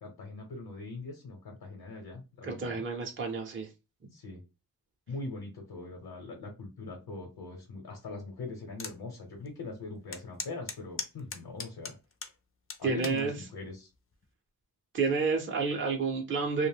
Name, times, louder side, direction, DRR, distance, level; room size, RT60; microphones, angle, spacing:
voice 1, 0.0-2.8 4.1-4.4 5.1-11.9 12.8-13.9, left 3 dB, 75° left, 0.8 m, -41 dB
voice 2, 2.4-3.7 12.8-13.3 14.9-16.7, right 4 dB, 35° right, 0.5 m, -30 dB
sound 1, 8.8-9.0 9.4-9.5 10.1-12.3 12.7-13.2 13.9-14.2, left 4 dB, 35° left, 0.4 m, -38 dB
2.4 x 2.1 x 3.2 m
wide cardioid pair, 120°, 37 cm